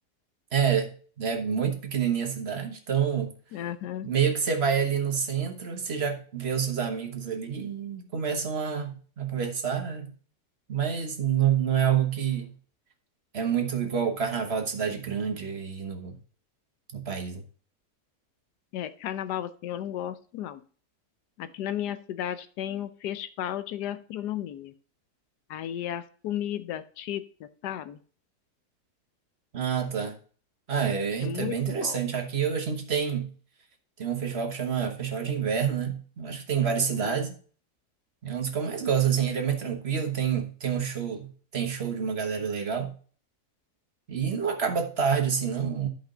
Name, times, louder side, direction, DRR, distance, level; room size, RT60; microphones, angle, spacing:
voice 1, 0.5-0.9 1.2-3.3 4.0-10.1 10.7-12.5 13.3-16.2 16.9-17.4 29.5-30.2 30.7-33.3 34.0-37.3 38.2-42.9 44.1-45.9, right 7 dB, 45° right, 1.4 m, -28 dB
voice 2, 3.5-4.1 18.7-20.6 21.4-24.7 25.5-28.0 31.2-31.5 31.8-32.0 37.0-37.2, left 11 dB, 90° left, 1.3 m, -34 dB
11.0 x 5.2 x 3.9 m
omnidirectional pair, 1.7 m